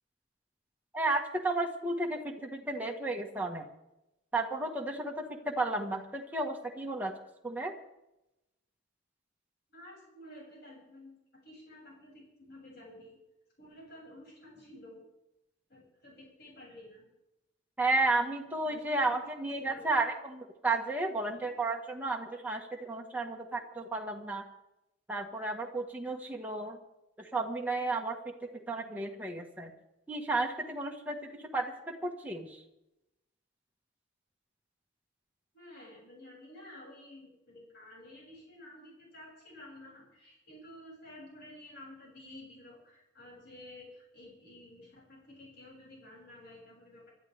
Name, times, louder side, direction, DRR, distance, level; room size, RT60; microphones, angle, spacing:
voice 1, 0.9-3.7 4.3-7.1 7.4-7.7 17.8-24.4 25.1-26.8 27.3-29.7 30.1-32.6, right 2 dB, 10° right, 0 dB, 1.5 m, -33 dB
voice 2, 9.7-13.2 13.6-15.0 15.7-17.1 18.6-19.2 19.6-20.0 21.3-21.5 35.5-47.1, left 1 dB, 55° left, -3 dB, 7.0 m, -52 dB
25.5 x 12.5 x 3.5 m, 0.91 s
head